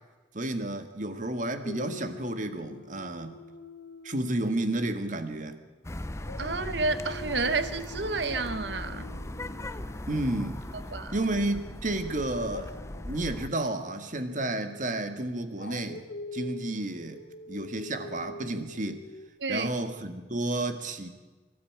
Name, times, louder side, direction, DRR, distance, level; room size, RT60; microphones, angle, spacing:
voice 1, 0.3-3.4 4.0-5.6 10.1-10.7 11.1-12.7 13.0-16.0 16.3-17.2 17.5-19.0 19.5-21.1, right 1 dB, 45° right, 8 dB, 1.6 m, -31 dB
Dog, 1.6-5.8 6.2-11.2 12.3-19.3, left 2 dB, 80° left, 1.2 m, -46 dB
sound 1, 5.8-13.5, left 1 dB, 15° left, 0.7 m, -39 dB
voice 2, 6.4-9.1 10.9-11.2 19.4-19.7, right 3 dB, 70° right, 12 dB, 1.2 m, -30 dB
24.0 x 13.0 x 8.7 m, 1.3 s
head